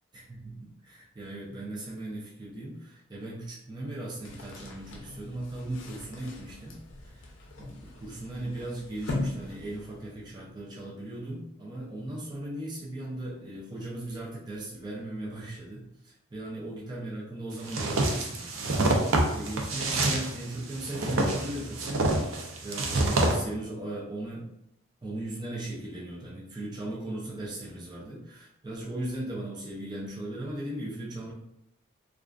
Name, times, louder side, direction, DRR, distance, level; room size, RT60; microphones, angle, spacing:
voice 1, 0.1-6.8 7.0-7.3 7.6-18.9 19.3-24.5 25.0-31.3, right 1 dB, 20° right, -5 dB, 0.4 m, -38 dB
sound 1, 4.2-10.4, left 2 dB, 70° left, 0.5 m, -40 dB
sound 2, 17.7-23.4, right 2 dB, 80° right, 0.4 m, -27 dB
2.4 x 2.3 x 2.2 m, 0.81 s
head